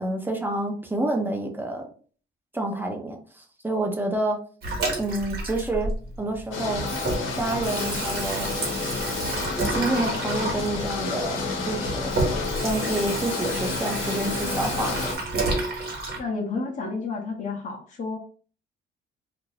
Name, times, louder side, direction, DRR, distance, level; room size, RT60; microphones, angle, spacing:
voice 1, 0.0-1.9 2.5-4.4 5.0-5.9 6.2-6.9 7.4-8.5 9.7-12.1 12.6-15.1, right 2 dB, 10° right, 2 dB, 0.7 m, -28 dB
Water tap faucet / Sink (filling or washing), 4.6-6.4 6.7-16.2, right 2 dB, 55° right, 1.1 m, -30 dB
sound 1, 6.5-15.1, left 4 dB, 85° left, 0.8 m, -30 dB
voice 2, 16.1-18.2, left 4 dB, 40° left, -3 dB, 0.8 m, -31 dB
2.5 x 2.2 x 3.2 m, 0.42 s
cardioid pair, 90°, 20 cm